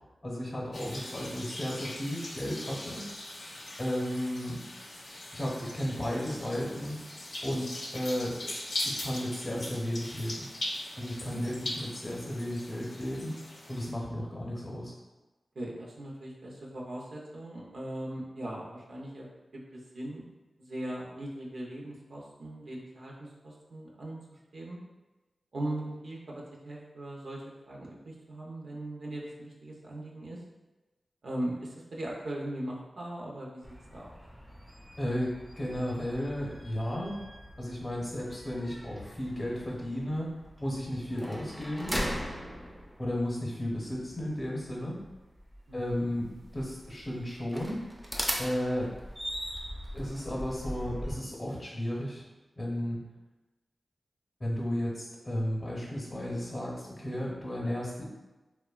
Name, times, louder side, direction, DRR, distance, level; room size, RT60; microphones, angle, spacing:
voice 1, 0.2-3.1 3.8-4.6 5.3-7.0 7.4-8.5 8.8-10.5 11.0-13.4 13.7-14.9 35.0-37.2 37.6-40.3 40.6-42.0 43.0-45.0 45.7-47.8 48.4-48.9 49.9-52.2 52.5-53.0 54.4-58.0, equal, 30° left, -4 dB, 0.7 m, -34 dB
sound 1, 0.7-13.9, left 1 dB, 75° left, 0.5 m, -40 dB
voice 2, 15.5-19.3 19.5-20.3 20.6-24.2 24.5-24.8 25.5-30.4 31.2-33.6 33.9-34.1 45.7-46.1, right 1 dB, 75° right, -3 dB, 0.5 m, -39 dB
sound 2, 33.6-51.2, equal, 5° right, 0.4 m, -40 dB
2.9 x 2.1 x 2.3 m, 1.1 s
cardioid pair, 45°, 0 cm